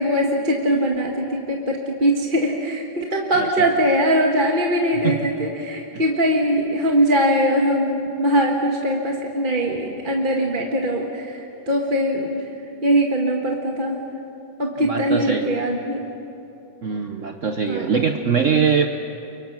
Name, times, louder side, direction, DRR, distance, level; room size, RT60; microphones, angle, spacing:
voice 1, 0.0-11.3 11.7-12.4 12.8-14.0 14.6-16.1 17.7-17.8, equal, 30° right, 0 dB, 1.6 m, -21 dB
voice 2, 3.3-3.7 5.0-5.5 14.8-15.5 16.8-18.9, right 6 dB, 55° right, 5 dB, 1.2 m, -22 dB
30.0 x 24.0 x 6.0 m, 2.8 s
omnidirectional pair, 1.8 m